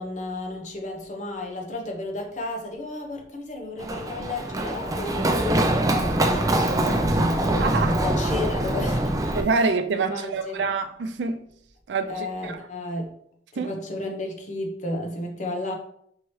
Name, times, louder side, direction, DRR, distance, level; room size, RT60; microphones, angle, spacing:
voice 1, 0.0-6.9 7.8-9.4 9.9-10.6 12.1-13.1 13.5-15.8, left 2 dB, 45° left, 0.8 m, -33 dB
Run, 3.8-9.4, right 1 dB, 20° right, 0.4 m, -23 dB
voice 2, 7.2-8.0 9.4-11.4 11.9-12.7 13.6-13.7, right 4 dB, 80° right, 0.4 m, -27 dB
4.6 x 2.9 x 3.1 m
head